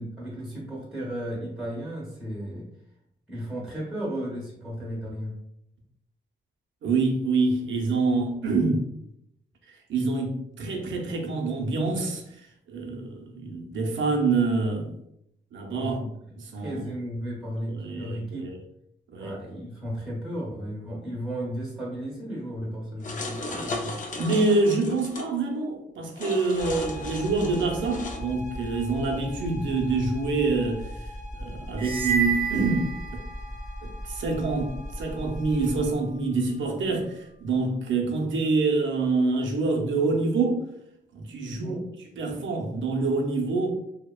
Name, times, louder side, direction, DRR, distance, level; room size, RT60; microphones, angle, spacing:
voice 1, 0.0-2.6 3.3-5.3 15.7-18.5 19.1-23.9 31.4-31.6 41.6-41.9, equal, ahead, -5 dB, 0.8 m, -34 dB
voice 2, 6.8-8.8 9.9-12.2 12.7-14.9 15.5-16.0 16.4-16.8 17.7-18.6 19.1-19.4 24.2-31.0 31.4-33.2 33.8-40.6 41.1-43.7, right 3 dB, 85° right, 0 dB, 0.6 m, -26 dB
sound 1, 23.0-25.3 26.1-28.2, left 2 dB, 40° left, 0.4 m, -35 dB
sound 2, 26.6-35.9, left 1 dB, 60° left, 0.9 m, -38 dB
sound 3, 31.8-33.6, right 6 dB, 25° right, 0.5 m, -29 dB
2.8 x 2.1 x 2.2 m, 0.79 s
wide cardioid pair, 145°, 19 cm